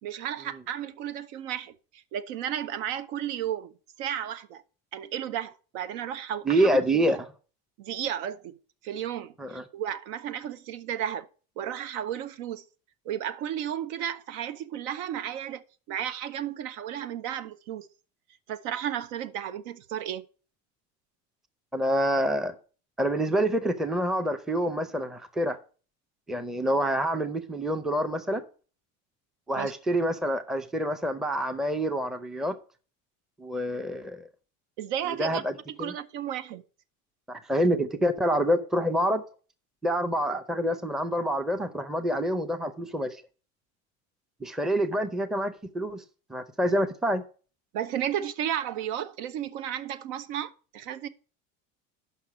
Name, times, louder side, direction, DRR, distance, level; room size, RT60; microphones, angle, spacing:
voice 1, 0.0-3.7 4.0-4.6 4.9-7.0 7.8-8.6 8.8-11.3 11.6-12.6 13.0-15.6 15.9-17.9 18.5-20.2 29.6-29.7 34.8-35.4 35.7-36.6 47.7-51.1, right 10 dB, 75° right, 0.8 m, -33 dB
voice 2, 6.4-7.2 9.4-9.6 21.7-22.5 23.0-25.6 26.3-28.4 29.5-32.6 33.4-34.3 35.2-35.5 35.8-35.9 37.3-39.2 39.8-43.2 44.4-46.0 46.3-47.2, equal, ahead, 0.5 m, -27 dB
6.4 x 5.7 x 7.3 m
cardioid pair, 130°, 38 cm